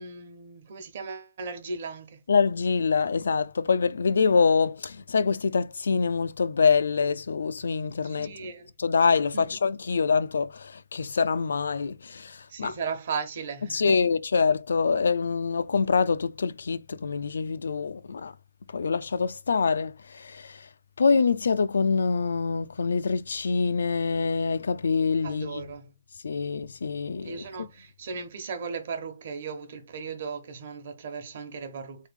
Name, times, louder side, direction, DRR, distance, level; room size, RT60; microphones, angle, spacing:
voice 1, 0.0-2.2 8.0-8.7 9.3-9.6 12.5-14.0 25.2-25.9 27.2-32.1, right 5 dB, 40° right, 1.1 m, -36 dB
voice 2, 2.3-8.3 8.8-12.7 13.7-18.3 18.7-20.7 21.0-25.6 26.2-27.7, left 5 dB, 70° left, 0.4 m, -25 dB
4.0 x 3.2 x 3.5 m
hypercardioid pair, 175°, 0 cm